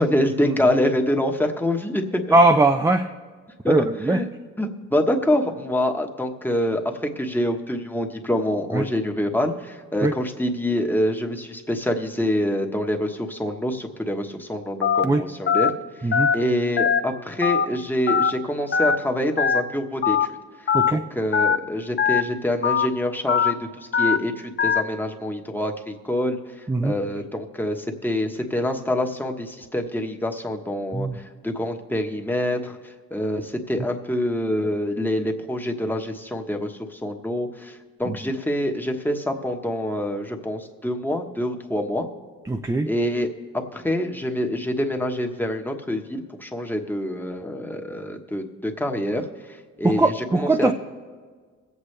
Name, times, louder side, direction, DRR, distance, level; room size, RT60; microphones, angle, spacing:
voice 1, 0.0-2.3 3.6-4.3 4.6-15.7 16.0-20.2 20.9-32.8 33.1-42.1 42.9-49.2 49.8-50.7, left 1 dB, 5° left, 3 dB, 1.2 m, -26 dB
voice 2, 2.3-3.1 3.7-4.2 8.7-8.8 10.0-10.1 15.0-15.2 16.0-16.3 20.7-21.0 26.7-26.9 30.9-31.2 38.1-38.2 42.5-42.9 49.8-50.7, right 2 dB, 10° right, 5 dB, 0.5 m, -20 dB
Telephone, 14.8-15.0 15.5-15.7 16.1-16.3 16.8-17.0 17.4-17.7 18.1-18.3 18.7-19.0 19.4-19.6 20.0-20.3 20.7-20.9 21.3-21.6 22.0-22.2 22.6-22.9 23.3-23.5 23.9-24.2 24.6-24.8, left 7 dB, 35° left, 0.7 m, -20 dB
22.0 x 8.2 x 3.3 m, 1.5 s
cardioid pair, 90°, 30 cm